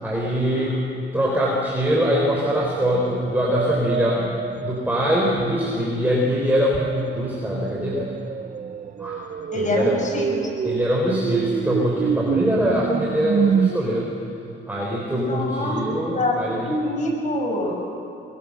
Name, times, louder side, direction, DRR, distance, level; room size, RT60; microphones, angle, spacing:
voice 1, 0.0-0.8 1.1-4.4 4.6-8.1 9.0-9.2 9.5-10.0 10.6-14.1 14.7-16.7, equal, 10° right, -3 dB, 4.3 m, -23 dB
voice 2, 0.5-1.0 9.5-10.5 13.5-13.8 15.1-15.8 16.1-17.7, left 1 dB, 40° left, 1 dB, 6.5 m, -26 dB
sound 1, 1.9-5.6 6.7-13.7, right 7 dB, 40° right, 0.6 m, -27 dB
23.0 x 21.5 x 6.6 m, 2.9 s
cardioid pair, 90°, 20 cm